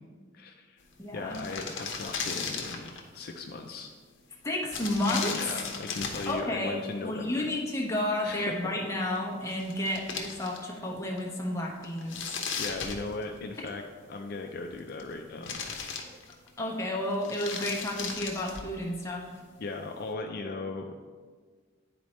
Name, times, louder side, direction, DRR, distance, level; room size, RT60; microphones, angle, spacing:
voice 1, 0.3-0.8 1.1-3.9 5.3-7.5 8.2-8.5 12.6-13.8 14.1-15.6 19.6-20.9, left 3 dB, 50° left, 3 dB, 0.4 m, -37 dB
sound 1, 0.9-1.0 1.2-3.1 4.7-6.4 9.2-9.3 9.5-10.8 11.2-11.3 11.8-13.6 14.6-15.1 15.4-16.6 17.1-18.8, left 5 dB, 70° left, 0.8 m, -36 dB
voice 2, 1.0-1.4 4.4-5.3 6.3-12.3 16.6-19.3, left 1 dB, 15° left, -2 dB, 0.9 m, -31 dB
10.0 x 4.2 x 3.1 m, 1.5 s
head